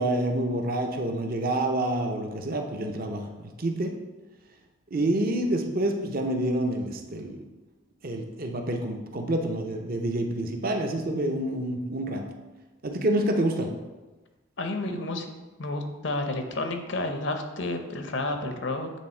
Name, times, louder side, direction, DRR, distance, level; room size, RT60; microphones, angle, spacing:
voice 1, 0.0-3.9 4.9-7.4 8.0-12.2 12.8-13.7, right 1 dB, 45° right, 4 dB, 0.7 m, -28 dB
voice 2, 14.6-15.3 15.6-18.9, left 2 dB, 60° left, 6 dB, 0.7 m, -30 dB
8.3 x 3.5 x 4.4 m, 1.2 s
head